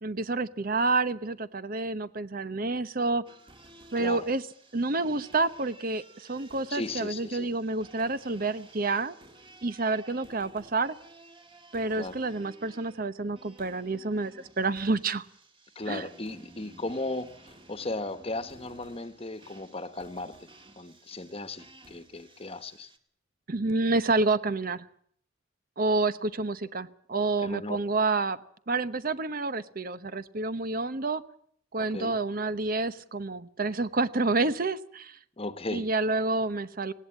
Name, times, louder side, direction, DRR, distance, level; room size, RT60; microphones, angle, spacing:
voice 1, 0.0-3.2 3.9-4.4 4.7-9.1 9.6-11.0 11.7-15.2 15.9-16.0 23.5-24.8 25.8-28.4 28.7-31.2 31.7-35.2 35.7-36.9, right 3 dB, 50° right, 0.9 m, -29 dB
sound 1, 3.3-23.0, right 2 dB, 25° right, 2.1 m, -55 dB
voice 2, 6.7-7.5 12.0-12.2 15.7-20.3 20.8-22.9 27.4-27.8 31.8-32.2 35.4-35.9, left 2 dB, 30° left, 1.3 m, -36 dB
19.5 x 17.0 x 8.6 m
head